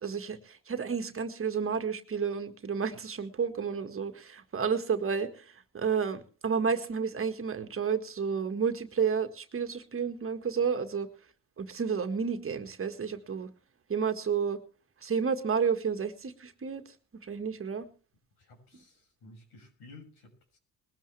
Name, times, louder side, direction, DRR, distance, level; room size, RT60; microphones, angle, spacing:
voice 1, 0.0-11.1 11.6-13.5 13.9-14.6 15.0-16.8 17.3-17.9, right 6 dB, 35° right, 8 dB, 1.8 m, -31 dB
voice 2, 18.4-20.6, left 2 dB, 70° left, 5 dB, 6.6 m, -54 dB
20.5 x 13.0 x 3.4 m, 0.38 s
supercardioid pair, 85°, 39 cm